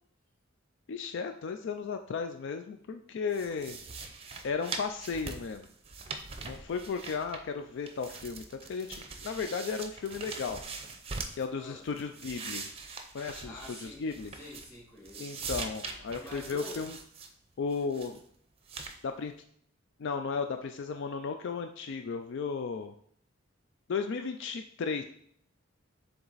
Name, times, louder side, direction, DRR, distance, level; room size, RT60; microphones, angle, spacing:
voice 1, 0.9-3.8 4.4-5.7 6.4-10.6 11.3-12.7 13.1-14.3 15.2-17.0 17.6-18.2 19.0-19.3 20.0-22.9 23.9-25.0, left 5 dB, 60° left, 7 dB, 0.4 m, -35 dB
sound 1, 3.3-7.6 7.9-11.5 11.9-14.8 15.1-17.3 17.7-18.2 18.7-19.0, right 4 dB, 30° right, 0.6 m, -42 dB
voice 2, 13.4-14.0 14.3-15.7 16.1-16.9, equal, 10° left, -5 dB, 2.3 m, -47 dB
7.1 x 3.5 x 3.9 m, 0.63 s
head